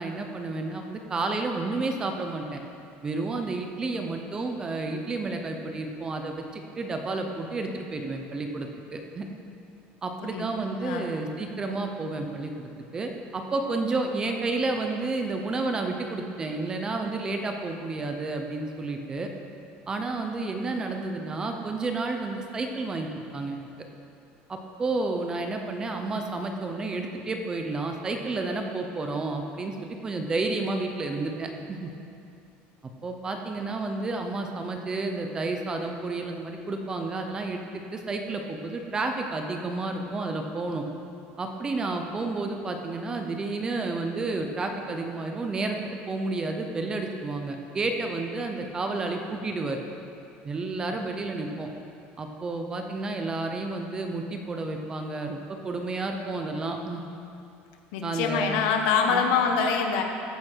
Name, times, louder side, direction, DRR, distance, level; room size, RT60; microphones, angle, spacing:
voice 1, 0.0-2.6 3.0-9.3 10.0-19.3 19.9-23.7 24.5-31.9 33.0-40.8 41.4-45.8 46.1-49.8 50.4-51.7 52.2-57.0 58.0-58.6 59.1-59.2, right 3 dB, 15° right, 4 dB, 0.7 m, -31 dB
voice 2, 57.9-60.0, left 6 dB, 85° left, 3 dB, 1.5 m, -24 dB
15.0 x 9.7 x 4.5 m, 2.6 s
cardioid pair, 180°, 4 cm